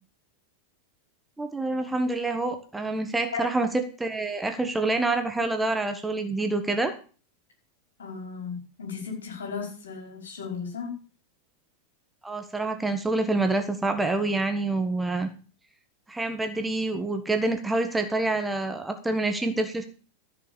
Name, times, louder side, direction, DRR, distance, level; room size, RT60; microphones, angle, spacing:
voice 1, 1.4-6.9 12.2-15.3 16.1-19.8, right 2 dB, 10° right, 6 dB, 1.4 m, -27 dB
voice 2, 8.0-10.9, left 6 dB, 65° left, 1 dB, 5.3 m, -35 dB
14.0 x 6.3 x 7.1 m, 0.36 s
figure-of-eight pair, 90°, 0 cm